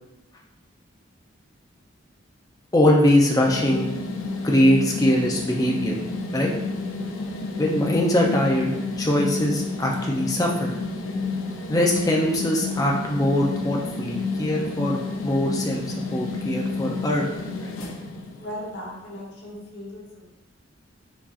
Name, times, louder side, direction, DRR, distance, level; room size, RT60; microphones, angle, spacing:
voice 1, 2.7-3.9 4.4-6.0 6.3-6.5 7.6-10.7 11.7-15.8 16.1-17.2 17.6-17.8, left 1 dB, 20° left, -1 dB, 0.4 m, -22 dB
sound 1, 3.4-18.8, left 3 dB, 85° left, 0.5 m, -30 dB
voice 2, 18.4-20.3, equal, 55° left, -4 dB, 1.0 m, -37 dB
4.6 x 2.7 x 2.4 m, 0.97 s
head